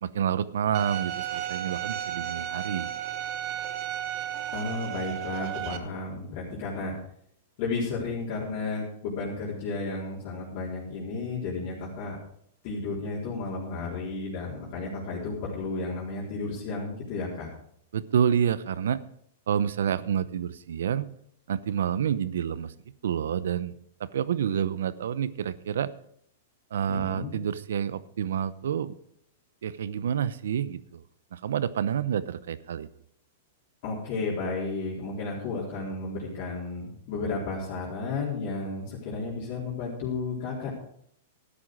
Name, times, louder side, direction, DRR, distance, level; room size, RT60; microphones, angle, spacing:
voice 1, 0.0-2.9 17.9-19.0 19.5-21.1 21.5-22.7 23.0-25.9 26.7-29.0 29.6-31.0 31.3-32.9, right 8 dB, 80° right, 17 dB, 0.7 m, -28 dB
Bowed string instrument, 0.7-5.8, right 11 dB, 45° right, 1.3 m, -33 dB
voice 2, 4.5-6.9 7.6-12.2 12.6-17.5 26.9-27.3 33.8-40.7, left 3 dB, 45° left, -6 dB, 4.0 m, -33 dB
13.0 x 10.0 x 4.8 m, 0.68 s
hypercardioid pair, 140°, 0 cm